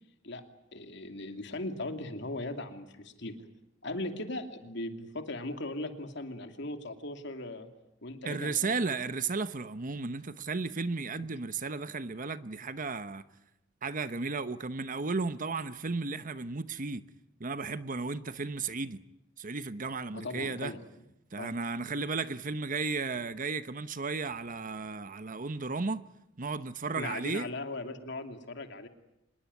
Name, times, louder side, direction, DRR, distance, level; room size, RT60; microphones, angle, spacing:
voice 1, 0.7-3.4 3.8-7.7 8.0-8.7 11.2-11.3 20.1-20.8 21.4-21.5 27.0-28.9, left 2 dB, 65° left, 2.7 m, -38 dB
voice 2, 8.2-13.3 13.8-17.0 17.4-19.0 19.4-20.7 21.3-26.0 26.4-27.5, right 4 dB, 45° right, 1.0 m, -34 dB
26.0 x 21.0 x 9.5 m
head